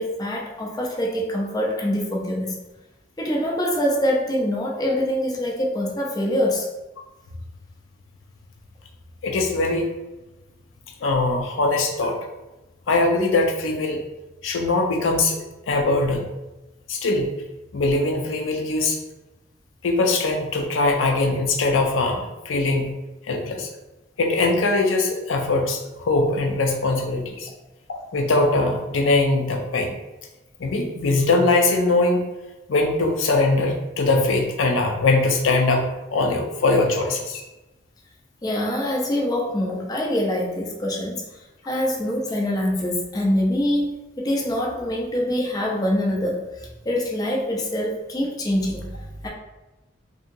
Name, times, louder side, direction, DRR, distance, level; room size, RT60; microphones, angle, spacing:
voice 1, 0.0-2.6 3.2-6.7 38.4-41.2 41.7-43.9 44.2-49.3, left 1 dB, 20° left, -2 dB, 0.4 m, -24 dB
voice 2, 9.2-9.9 11.0-12.2 12.9-14.0 14.4-15.4 15.7-16.3 16.9-17.3 17.7-19.0 19.8-22.9 23.3-23.7 24.2-27.5 27.9-30.0 30.6-32.2 32.7-37.4, left 2 dB, 85° left, 2 dB, 0.5 m, -21 dB
2.7 x 2.7 x 2.5 m, 1.0 s
head